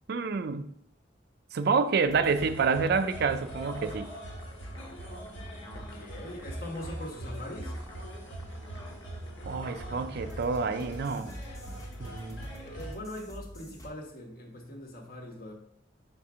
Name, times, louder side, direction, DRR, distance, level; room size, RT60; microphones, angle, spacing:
voice 1, 0.1-0.7 1.5-4.1 9.4-11.3 12.0-12.4, right 5 dB, 60° right, 10 dB, 0.4 m, -28 dB
sound 1, 2.0-13.9, equal, 20° left, 0.9 m, -48 dB
sound 2, 2.2-13.0, right 1 dB, 80° left, 1.5 m, -42 dB
voice 2, 5.7-7.8 12.4-15.5, left 1 dB, 50° left, 1 dB, 1.2 m, -42 dB
5.9 x 4.4 x 3.6 m, 0.68 s
head